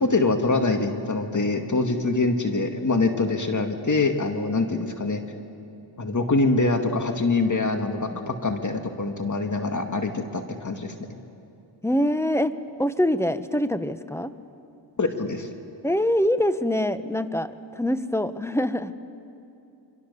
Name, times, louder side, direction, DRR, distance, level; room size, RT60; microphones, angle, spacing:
voice 1, 0.0-5.2 6.0-10.9 15.0-15.5, left 3 dB, 40° left, 5 dB, 2.1 m, -24 dB
voice 2, 11.8-14.3 15.8-18.9, left 1 dB, 5° left, 12 dB, 1.1 m, -24 dB
26.5 x 25.0 x 7.0 m, 2.7 s
cardioid pair, 55°, 46 cm